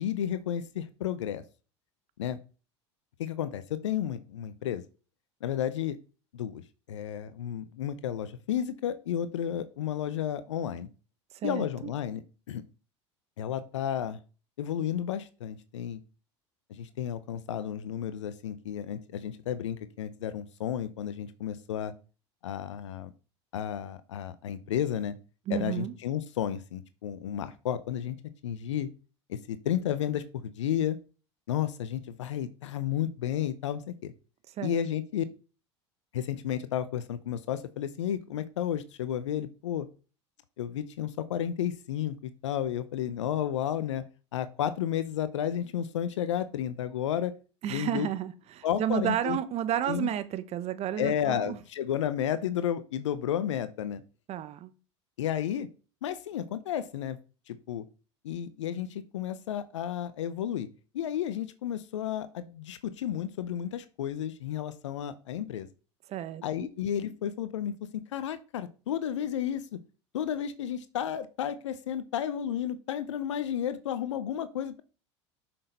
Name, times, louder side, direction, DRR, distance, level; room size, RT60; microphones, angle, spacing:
voice 1, 0.0-1.4 2.2-2.4 3.2-4.8 5.4-6.0 6.3-6.6 6.9-10.9 11.4-12.2 12.5-12.6 13.4-14.2 14.6-16.0 16.7-21.9 22.4-23.1 23.5-25.1 25.5-28.2 28.4-28.9 29.3-31.0 31.5-34.1 34.6-35.2 36.1-39.9 40.6-44.0 44.3-47.3 47.7-48.1 48.6-49.4 49.9-50.1 51.0-54.0 55.2-55.7 56.0-57.2 57.5-57.8 58.2-60.7 60.9-65.7 66.4-67.7 68.1-69.6 70.1-74.8, left 10 dB, 80° left, 13 dB, 0.7 m, -32 dB
voice 2, 11.4-11.9 25.5-25.9 34.6-34.9 47.6-51.6 54.3-54.7 66.1-66.7, right 10 dB, 45° right, 13 dB, 1.1 m, -32 dB
7.6 x 6.1 x 5.2 m, 0.35 s
hypercardioid pair, 80°, 15 cm